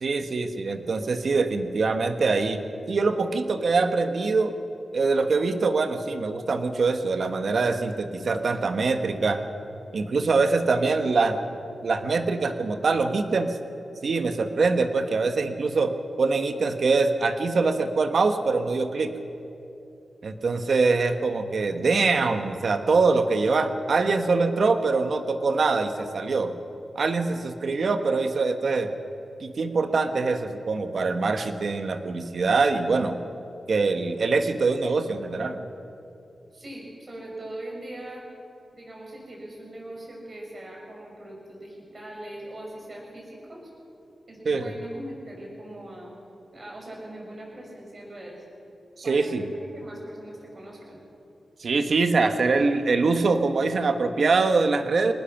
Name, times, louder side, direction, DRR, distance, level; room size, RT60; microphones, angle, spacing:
voice 1, 0.0-2.6 2.9-4.5 4.9-9.4 9.9-11.4 11.8-13.6 14.0-19.1 20.2-26.5 26.9-28.9 29.4-33.2 33.7-35.7 44.4-44.7 49.0-49.5 51.6-55.1, right 4 dB, 65° right, 8 dB, 1.4 m, -24 dB
voice 2, 36.5-38.2 38.7-43.6 44.3-46.1 46.5-48.4 49.0-51.0, right 1 dB, 45° right, -2 dB, 6.7 m, -41 dB
23.5 x 19.5 x 6.0 m, 2.8 s
wide cardioid pair, 90°, 0 cm